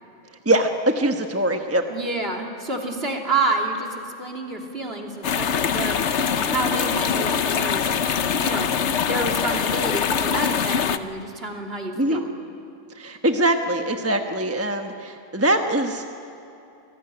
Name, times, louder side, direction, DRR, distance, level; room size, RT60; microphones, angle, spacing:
voice 1, 0.4-1.8 12.0-12.2 12.9-16.1, right 1 dB, 10° right, 4 dB, 1.0 m, -22 dB
voice 2, 1.9-7.8 8.4-12.3, right 2 dB, 45° right, 1 dB, 3.2 m, -29 dB
sound 1, 5.2-11.0, left 7 dB, 60° left, 1.1 m, -23 dB
28.0 x 19.0 x 10.0 m, 2.8 s
omnidirectional pair, 1.5 m